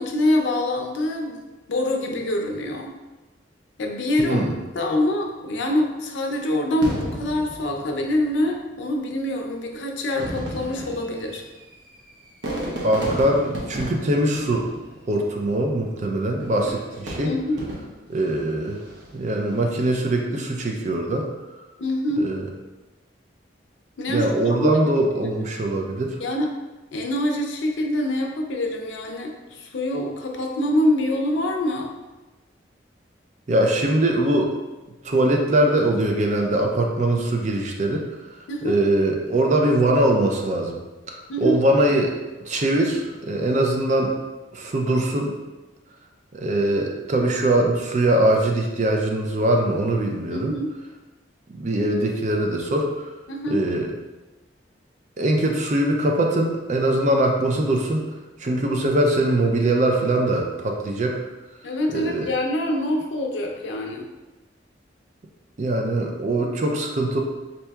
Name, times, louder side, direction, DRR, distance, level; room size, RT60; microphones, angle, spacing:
voice 1, 0.0-1.3 1.7-2.9 3.8-4.4 4.7-11.4 17.2-17.7 21.8-22.3 24.0-24.8 25.2-25.3 26.2-26.5 26.9-31.9 38.5-38.8 41.3-41.6 50.3-50.7 53.3-53.6 61.6-64.1, left 1 dB, 85° left, 2 dB, 0.5 m, -25 dB
voice 2, 4.2-4.5 12.8-14.7 15.1-17.4 18.1-18.8 19.1-21.3 22.2-22.5 24.1-26.2 33.5-34.5 35.0-38.1 38.6-40.8 41.1-42.1 42.5-44.1 44.5-45.3 46.3-50.5 51.6-53.0 53.5-53.9 55.2-58.0 58.4-61.2 61.9-62.3 65.6-67.2, right 1 dB, 40° right, 2 dB, 0.4 m, -22 dB
Fireworks, 6.8-8.4 9.3-9.4 10.0-15.3 16.4-18.2 18.7-19.2, right 1 dB, 80° right, 0.8 m, -33 dB
4.3 x 2.7 x 2.3 m, 1.1 s
head